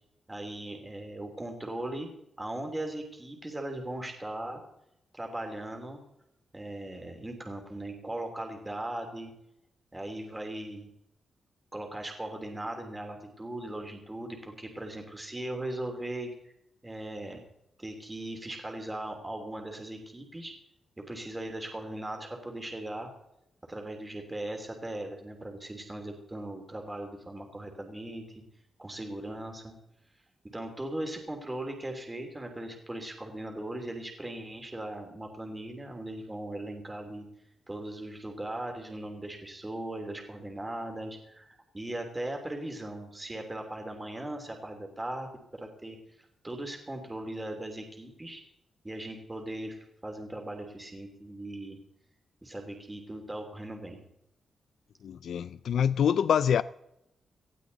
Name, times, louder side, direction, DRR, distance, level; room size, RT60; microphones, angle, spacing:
voice 1, 0.3-2.1 2.4-4.6 5.1-6.0 6.5-9.3 9.9-10.9 11.7-16.5 16.8-17.4 17.8-20.5 21.0-23.1 23.7-28.4 28.8-29.7 30.5-37.3 37.7-46.0 46.4-48.4 48.8-51.8 52.4-54.0, right 1 dB, 15° right, 3.0 m, -38 dB
voice 2, 55.0-56.6, left 8 dB, 70° left, 0.5 m, -25 dB
19.0 x 15.5 x 4.1 m
wide cardioid pair, 145°, 0 cm